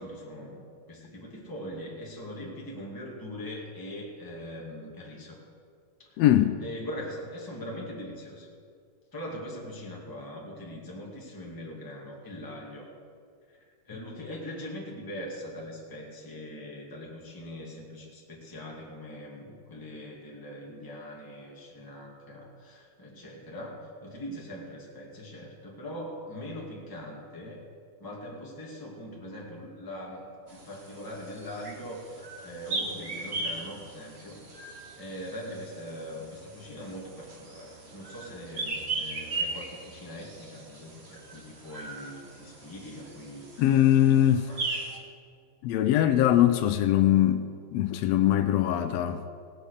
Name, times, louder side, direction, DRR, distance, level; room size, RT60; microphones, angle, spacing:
voice 1, 0.0-5.4 6.0-6.2 6.6-8.5 9.1-12.9 13.5-27.6 28.0-30.3 30.7-34.4 34.9-44.6, equal, 10° left, -3 dB, 1.9 m, -41 dB
voice 2, 6.2-6.6 43.6-44.4 45.6-47.5 47.7-49.2, left 12 dB, 75° left, 7 dB, 1.6 m, -22 dB
sound 1, 30.5-45.0, right 3 dB, 35° right, 1.0 m, -38 dB
18.0 x 8.6 x 6.5 m, 2.2 s
omnidirectional pair, 3.3 m